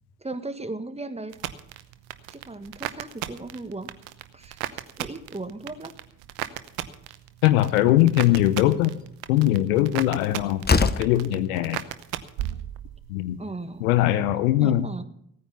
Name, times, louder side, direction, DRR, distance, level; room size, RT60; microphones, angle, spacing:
voice 1, 0.2-1.4 2.3-3.9 4.3-5.9 13.4-14.0 14.6-15.0, right 2 dB, 15° right, 9 dB, 1.5 m, -36 dB
sound 1, 1.3-13.2 13.5-14.1, right 13 dB, 75° right, 0.9 m, -36 dB
voice 2, 7.4-9.0 9.3-11.8 13.1-13.4 13.8-14.9, left 14 dB, 85° left, 13 dB, 0.8 m, -21 dB
Slam, 7.6-7.7 8.3-8.6 10.1-10.2 10.6-11.2, left 4 dB, 25° left, 0.9 m, -23 dB
17.0 x 9.4 x 5.7 m, 0.70 s
hypercardioid pair, 45°, 42 cm